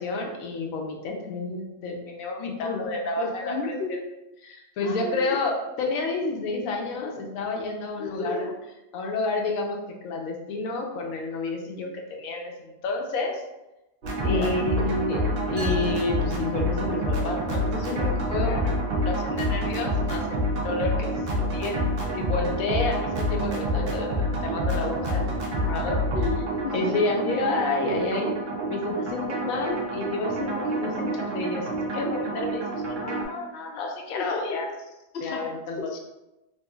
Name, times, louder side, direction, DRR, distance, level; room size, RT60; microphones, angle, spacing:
voice 1, 0.0-3.8 4.4-5.5 5.8-8.5 8.9-9.8 10.0-13.4 14.2-18.7 19.1-21.9 22.1-25.2 25.5-26.0 26.7-28.3 28.7-34.7 35.2-35.8, left 2 dB, 85° left, 1 dB, 1.0 m, -30 dB
voice 2, 2.4-2.8 3.2-4.0 4.8-5.4 8.0-8.6 14.2-15.0 18.4-18.7 25.6-27.2 29.0-29.1 34.1-34.7 35.1-35.5 35.8-36.0, left 4 dB, 65° left, 2 dB, 0.6 m, -33 dB
sound 1, 14.0-33.2, equal, 60° right, 0.5 m, -28 dB
sound 2, 15.6-17.3, equal, 45° right, 0.9 m, -41 dB
3.0 x 2.7 x 2.3 m, 0.96 s
omnidirectional pair, 1.4 m